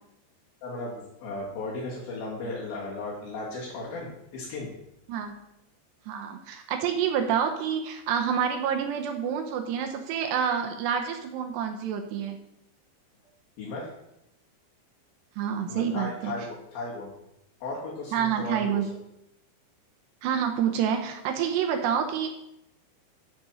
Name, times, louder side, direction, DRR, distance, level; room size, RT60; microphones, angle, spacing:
voice 1, 0.6-4.7 13.6-13.9 15.7-17.1 17.6-18.7, left 2 dB, 60° left, -6 dB, 3.8 m, -36 dB
voice 2, 6.1-12.4 15.4-16.3 18.1-18.9 20.2-22.3, right 8 dB, 75° right, 4 dB, 2.9 m, -28 dB
12.5 x 5.2 x 6.3 m, 0.83 s
omnidirectional pair, 5.2 m